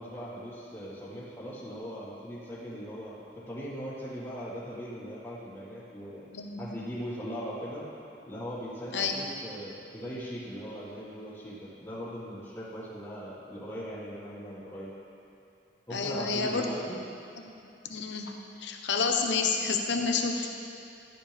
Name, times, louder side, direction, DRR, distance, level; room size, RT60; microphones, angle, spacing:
voice 1, 0.0-3.2 3.5-6.2 6.6-7.9 8.3-14.9 15.9-17.0, equal, 15° left, -13 dB, 1.9 m, -39 dB
voice 2, 15.9-16.7 17.9-20.5, left 5 dB, 85° left, 3 dB, 1.0 m, -29 dB
13.5 x 9.9 x 3.5 m, 2.8 s
head